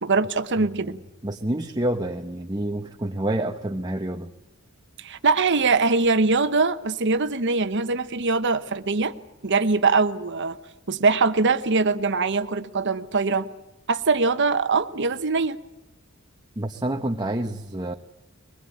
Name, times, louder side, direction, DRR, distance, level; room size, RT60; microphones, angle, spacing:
voice 1, 0.0-1.0 5.0-9.1 9.4-10.6 10.9-13.5 13.9-15.6, right 4 dB, 60° right, 10 dB, 1.1 m, -22 dB
voice 2, 0.6-1.0 1.2-4.3 16.6-17.9, right 1 dB, 20° right, 4 dB, 1.0 m, -28 dB
23.0 x 21.0 x 8.6 m, 0.96 s
head